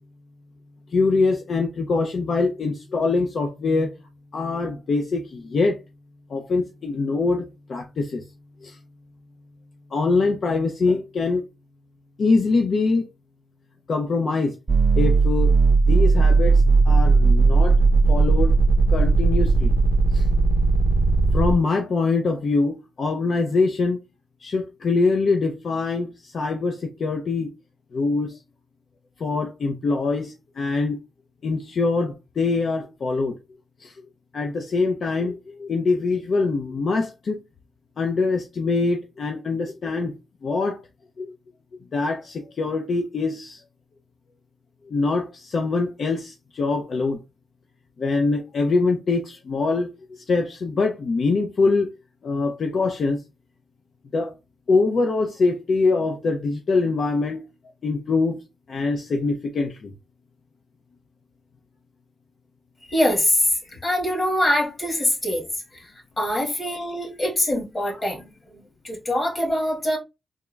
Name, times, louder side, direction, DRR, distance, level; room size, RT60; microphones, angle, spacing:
voice 1, 0.9-3.9 4.3-5.8 6.3-7.4 7.7-8.2 8.6-8.8 9.9-11.4 12.2-13.1 13.9-14.5 15.0-15.6 15.9-17.8 18.1-18.6 18.9-19.7 20.1-20.3 21.3-24.0 24.4-27.5 27.9-28.4 29.2-31.0 31.4-33.4 33.8-33.9 34.3-37.4 38.0-40.1 40.4-40.8 41.2-41.3 41.9-43.6 44.9-47.2 48.0-51.9 52.2-53.2 54.1-54.3 54.7-57.4 57.8-58.4 58.7-59.9, left 3 dB, 60° left, 0.5 m, -23 dB
sound 1, 14.7-21.5, right 3 dB, 25° right, 0.5 m, -17 dB
voice 2, 62.9-65.5 65.7-65.9 66.2-70.0, left 1 dB, 30° left, 1.7 m, -24 dB
3.5 x 2.0 x 3.2 m
wide cardioid pair, 120°, 0 cm